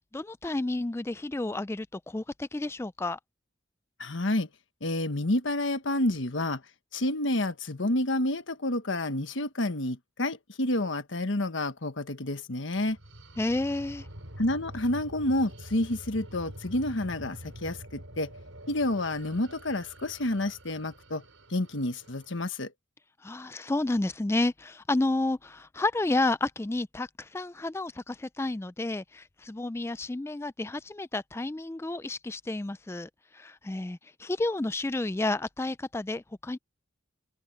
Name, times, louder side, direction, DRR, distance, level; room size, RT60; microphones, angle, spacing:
voice 1, 0.1-3.2 13.4-14.1 23.2-36.6, left 2 dB, 10° left, 0.3 m, -31 dB
voice 2, 4.0-4.5 4.8-6.6 6.9-13.0 14.4-18.3 18.7-21.2 21.5-22.7, left 1 dB, 70° left, 1.4 m, -29 dB
sound 1, 12.8-22.5, right 1 dB, 80° right, 6.1 m, -46 dB
head